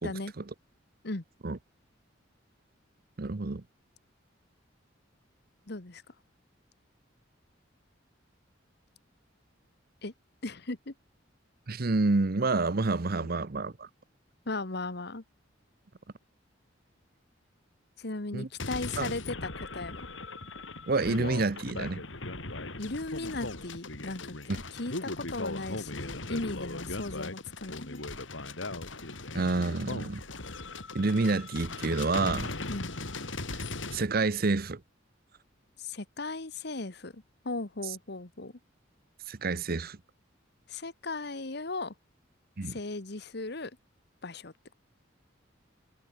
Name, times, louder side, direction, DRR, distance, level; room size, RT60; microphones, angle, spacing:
voice 1, 0.0-0.3 1.0-1.2 5.7-6.0 10.0-10.1 10.4-10.9 14.4-15.2 18.0-20.1 22.8-28.0 32.7-32.9 35.8-38.5 40.7-41.9 42.6-43.7 44.2-44.5, left 2 dB, 55° left, 1.5 m, -37 dB
voice 2, 3.2-3.6 11.7-13.9 18.3-18.5 19.0-19.1 20.9-22.0 29.3-30.2 30.9-32.5 33.9-34.8 39.3-40.0 42.6-42.8, right 3 dB, 50° right, 0.8 m, -28 dB
sound 1, 18.6-34.0, left 2 dB, 75° left, 4.1 m, -38 dB
head